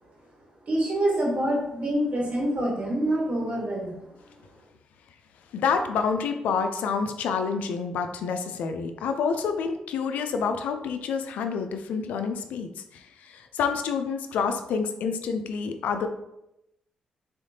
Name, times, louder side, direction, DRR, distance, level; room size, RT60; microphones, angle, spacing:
voice 1, 0.7-3.9, right 1 dB, 55° right, -3 dB, 1.5 m, -26 dB
voice 2, 5.5-16.1, left 5 dB, 85° left, 7 dB, 0.4 m, -28 dB
3.6 x 3.4 x 2.7 m, 0.85 s
cardioid pair, 65°, 3 cm